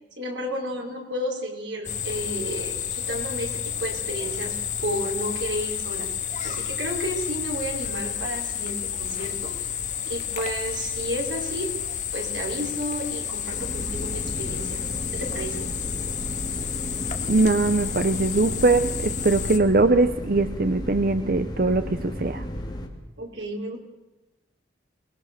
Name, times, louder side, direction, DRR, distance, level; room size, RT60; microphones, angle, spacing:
voice 1, 0.2-6.1 6.4-9.5 10.1-11.7 12.1-14.8 15.1-15.6 23.2-23.8, equal, 90° right, 1 dB, 4.5 m, -32 dB
sound 1, 1.8-19.6, left 8 dB, 45° left, 1.7 m, -31 dB
sound 2, 13.5-22.9, equal, 25° left, 3.2 m, -34 dB
voice 2, 17.3-22.4, right 3 dB, 50° right, 11 dB, 0.7 m, -21 dB
23.5 x 20.0 x 6.7 m, 1.0 s
head